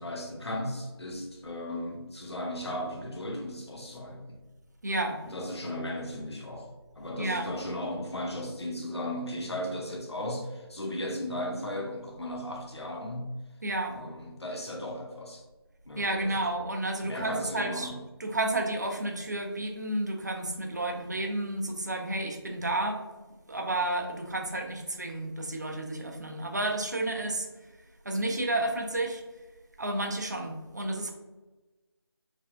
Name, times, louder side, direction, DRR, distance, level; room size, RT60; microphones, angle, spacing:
voice 1, 0.0-4.2 5.2-6.7 6.9-13.3 13.9-15.4 15.9-16.4 17.0-18.0, left 1 dB, 85° left, 1 dB, 0.7 m, -36 dB
voice 2, 4.8-5.2 7.2-7.5 13.6-13.9 16.0-17.9 18.2-23.0 23.5-27.5 28.0-29.2 29.8-31.1, right 2 dB, 45° right, 3 dB, 0.4 m, -31 dB
3.3 x 2.2 x 2.5 m, 1.1 s
figure-of-eight pair, 165°, 13 cm